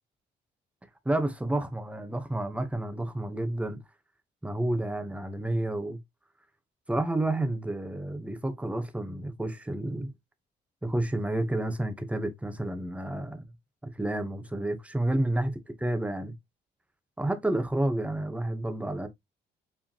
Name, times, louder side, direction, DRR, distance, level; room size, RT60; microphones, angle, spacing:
voice 1, 1.0-3.8 4.4-6.0 6.9-10.1 10.8-13.5 13.8-15.5 15.8-16.3 17.2-19.1, right 1 dB, 5° right, 1.0 m, -30 dB
4.9 x 3.6 x 2.9 m
cardioid pair, 90°, 20 cm